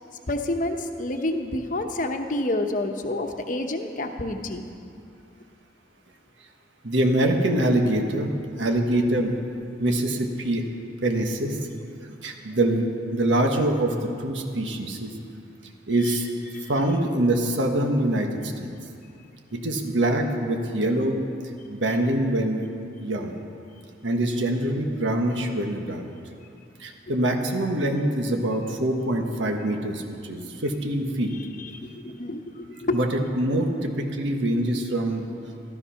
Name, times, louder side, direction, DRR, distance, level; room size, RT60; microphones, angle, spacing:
voice 1, 0.3-4.7 16.0-16.2 16.5-16.7 31.6-33.0, left 1 dB, 45° left, 5 dB, 1.0 m, -29 dB
voice 2, 6.8-8.3 8.6-9.4 9.8-10.6 11.0-11.6 12.2-15.1 15.9-16.3 16.7-18.7 19.5-21.2 21.7-22.6 23.0-23.3 24.0-26.1 26.8-31.3 32.9-35.3, right 1 dB, 90° right, 3 dB, 1.4 m, -24 dB
13.5 x 13.0 x 5.8 m, 2.5 s
head